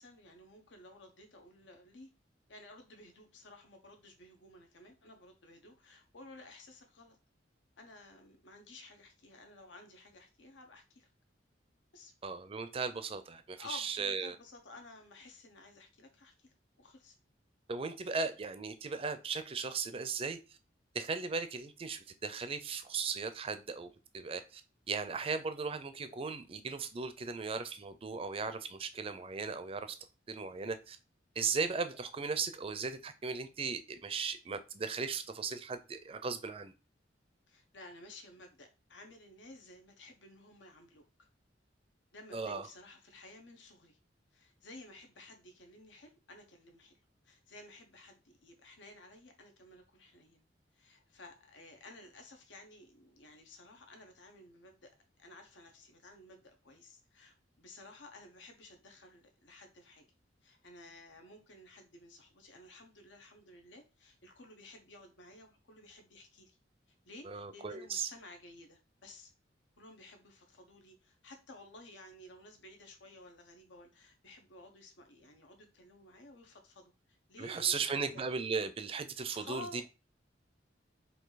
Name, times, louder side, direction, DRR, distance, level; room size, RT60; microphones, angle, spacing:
voice 1, 0.0-2.1 2.5-7.2 7.8-11.1 11.9-12.1 13.5-17.2 37.5-41.0 42.1-44.0 44.3-46.9 47.2-50.4 50.7-54.9 55.2-60.0 60.4-66.6 67.1-69.3 69.8-78.2 79.3-79.8, left 2 dB, 80° left, 1.0 m, -54 dB
voice 2, 12.2-14.4 17.7-20.4 20.9-23.9 24.1-24.6 24.9-30.0 30.3-31.0 31.4-36.7 42.3-42.7 67.3-68.1 77.4-79.8, right 5 dB, 30° right, 0.4 m, -37 dB
4.6 x 2.7 x 4.0 m
head